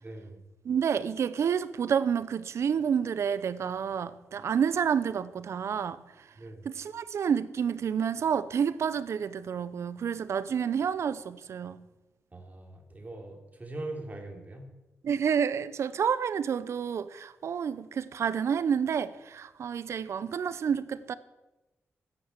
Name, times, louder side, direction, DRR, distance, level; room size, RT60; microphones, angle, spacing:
voice 1, 0.0-0.4 6.4-6.7 12.3-14.7, right 2 dB, 35° right, 3.3 m, -41 dB
voice 2, 0.6-6.3 6.6-11.8 15.0-21.1, right 7 dB, 75° right, 0.8 m, -29 dB
12.5 x 10.0 x 7.5 m
cardioid pair, 65°, 5 cm